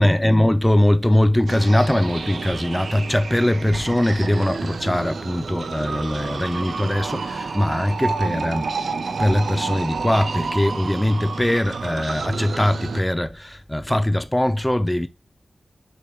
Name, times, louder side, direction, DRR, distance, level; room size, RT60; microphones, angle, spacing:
voice 1, 0.0-8.7 9.2-15.1, left 1 dB, 10° left, 0.4 m, -21 dB
sound 1, 1.5-13.0, right 4 dB, 70° right, 0.6 m, -30 dB
6.8 x 2.8 x 4.8 m
wide cardioid pair, 120°, 0 cm